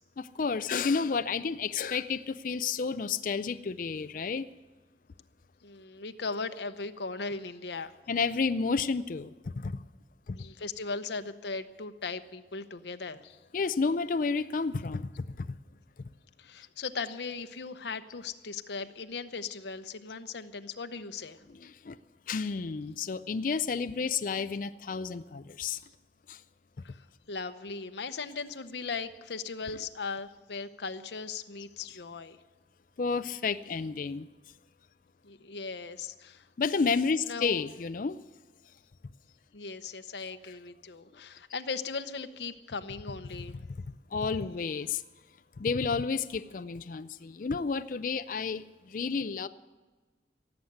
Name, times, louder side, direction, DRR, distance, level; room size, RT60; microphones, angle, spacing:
voice 1, 0.2-4.4 8.1-9.7 10.3-10.4 13.5-15.5 21.5-22.0 22.3-25.8 26.3-26.4 33.0-34.3 36.6-38.2 44.1-45.0 45.6-49.5, left 5 dB, 50° left, 11 dB, 0.4 m, -31 dB
voice 2, 5.6-7.9 10.3-13.4 16.4-21.4 22.4-22.5 26.8-32.4 35.2-36.5 37.2-37.6 39.5-43.6, left 4 dB, 75° left, 9 dB, 0.8 m, -38 dB
17.0 x 7.9 x 9.3 m, 1.3 s
head